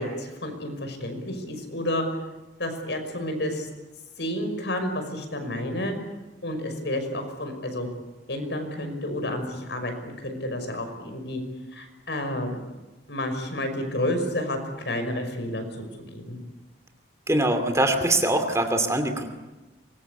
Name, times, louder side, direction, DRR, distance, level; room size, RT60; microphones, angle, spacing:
voice 1, 0.0-2.1 2.6-3.7 4.2-5.9 6.4-7.9 8.3-11.4 11.7-12.6 13.1-14.6 14.8-15.6 16.1-16.4, left 1 dB, 75° left, 6 dB, 5.8 m, -30 dB
voice 2, 17.3-19.3, right 1 dB, 15° right, 6 dB, 2.6 m, -23 dB
25.5 x 22.0 x 8.4 m, 1.1 s
head